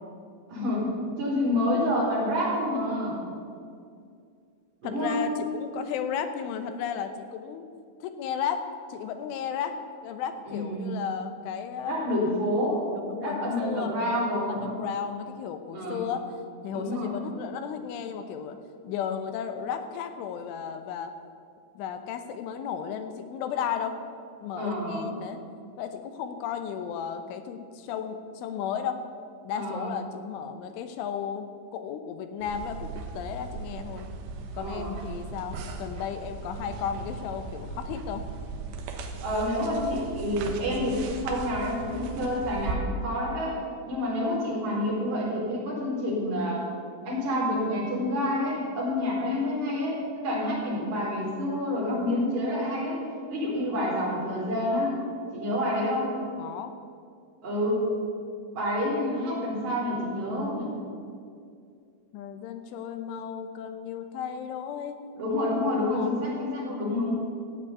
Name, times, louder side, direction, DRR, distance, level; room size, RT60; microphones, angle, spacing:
voice 1, 0.5-0.9 1.2-3.2 4.8-5.3 10.5-10.9 11.9-12.9 13.2-14.7 15.7-16.1 16.7-17.2 24.6-25.0 29.5-29.9 34.6-34.9 39.2-43.6 43.9-46.6 47.0-53.0 53.3-55.0 55.3-56.1 57.4-57.9 58.5-60.7 65.2-67.1, left 1 dB, 35° right, -5 dB, 4.9 m, -28 dB
voice 2, 4.8-7.7 8.0-9.8 10.0-12.0 12.9-13.9 14.5-16.3 16.6-18.6 18.8-21.1 21.8-24.0 24.4-25.4 25.8-29.0 29.4-31.5 31.7-34.1 34.5-38.2 56.4-56.7 62.1-65.0 65.9-66.1, left 8 dB, 80° left, 8 dB, 3.1 m, -34 dB
sound 1, 32.4-42.8, right 4 dB, 70° right, 3.1 m, -38 dB
16.0 x 8.2 x 8.4 m, 2.3 s
omnidirectional pair, 5.9 m